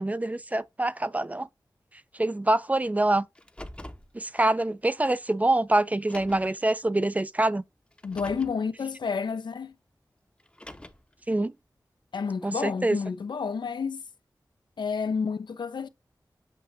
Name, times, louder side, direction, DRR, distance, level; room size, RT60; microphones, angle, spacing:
voice 1, 0.0-1.5 2.2-3.3 4.1-7.6 11.3-11.5 12.4-13.0, right 2 dB, 20° right, 0.3 m, -25 dB
Car, 3.3-4.1 5.2-5.3 6.0-6.6 7.9-8.6 10.4-11.1, left 1 dB, 15° left, 0.6 m, -44 dB
voice 2, 8.0-9.7 12.1-14.0 14.8-15.9, left 5 dB, 80° left, 0.5 m, -30 dB
7.5 x 2.6 x 2.6 m
wide cardioid pair, 75°, 8 cm